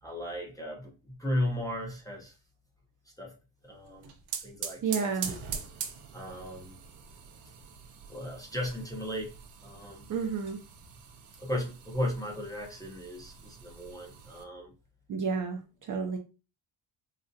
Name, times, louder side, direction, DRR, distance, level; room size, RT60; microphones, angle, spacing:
voice 1, 0.0-2.4 3.2-3.3 3.6-4.1 4.4-5.4 6.1-6.8 8.1-10.1 11.4-14.7, left 1 dB, 10° left, 0.6 m, -36 dB
sound 1, 3.8-14.4, right 7 dB, 90° right, 0.7 m, -43 dB
voice 2, 4.8-5.3 10.1-10.6 15.1-16.2, right 5 dB, 45° right, 0.4 m, -31 dB
3.8 x 2.1 x 2.6 m
cardioid pair, 140°, 48 cm